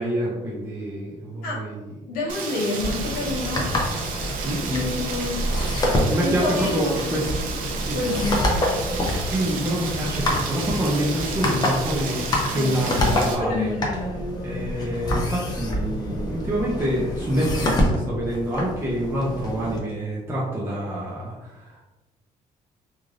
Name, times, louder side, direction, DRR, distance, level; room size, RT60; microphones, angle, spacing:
voice 1, 0.0-1.9 4.4-4.8 6.1-7.3 7.7-8.0 9.2-13.7 14.4-21.8, equal, 15° right, -6 dB, 0.5 m, -27 dB
voice 2, 2.1-3.7 4.7-5.4 6.2-7.2 7.9-9.1 12.5-14.6, left 2 dB, 90° left, -2 dB, 0.9 m, -29 dB
Rain, 2.3-13.4, right 5 dB, 75° right, 0.5 m, -32 dB
sound 1, 2.8-19.8, left 1 dB, 30° left, 0.6 m, -27 dB
3.1 x 2.5 x 2.4 m, 1.1 s
cardioid pair, 130°, 14 cm